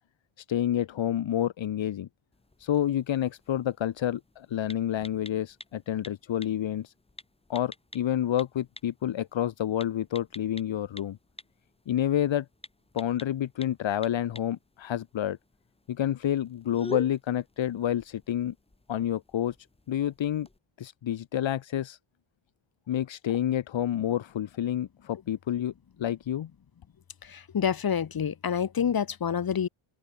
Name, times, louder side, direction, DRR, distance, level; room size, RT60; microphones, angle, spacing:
voice 1, 0.4-2.1 2.6-6.9 7.5-11.2 11.9-12.5 12.9-15.4 15.9-18.5 18.9-19.6 19.9-20.5 20.8-22.0 22.9-25.7 26.0-26.5, left 11 dB, 65° left, 2.7 m, -29 dB
sound 1, 2.3-20.6, left 2 dB, 10° left, 4.8 m, -48 dB
voice 2, 27.2-29.7, left 8 dB, 45° left, 6.2 m, -28 dB
open air
wide cardioid pair, 175°, 49 cm